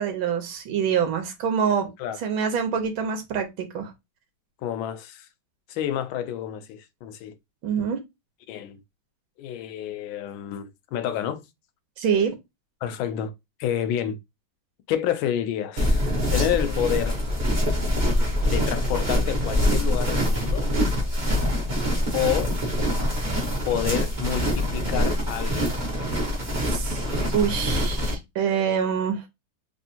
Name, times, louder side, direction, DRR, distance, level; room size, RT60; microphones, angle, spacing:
voice 1, 0.0-1.9 2.2-3.9 7.6-8.0 12.0-12.3 26.6-29.2, right 7 dB, 85° right, 1.7 m, -25 dB
voice 2, 4.6-5.3 5.7-7.4 8.5-8.8 9.4-11.4 12.8-13.3 13.6-14.2 14.9-16.0 16.3-17.2 18.1-20.7 22.1-22.5 23.7-25.7, left 10 dB, 80° left, 1.4 m, -29 dB
sound 1, 15.8-28.1, equal, 30° right, 1.0 m, -24 dB
3.4 x 3.2 x 2.8 m
omnidirectional pair, 2.2 m